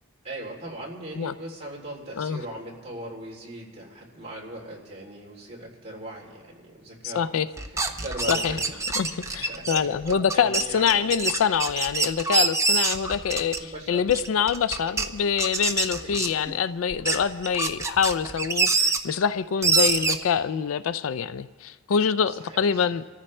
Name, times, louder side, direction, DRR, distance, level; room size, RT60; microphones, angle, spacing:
voice 1, 0.2-7.2 7.7-8.8 9.0-11.1 13.6-14.0 16.0-16.2 19.8-19.9 22.3-22.9, right 1 dB, 30° right, 3.2 m, -39 dB
voice 2, 7.0-7.5 8.3-8.6 9.0-23.0, left 7 dB, 65° left, 0.4 m, -25 dB
sound 1, 7.6-13.7 14.1-15.1 15.4-16.5 16.9-19.0 19.6-20.2, right 4 dB, 15° right, 0.7 m, -25 dB
26.5 x 14.5 x 3.3 m
head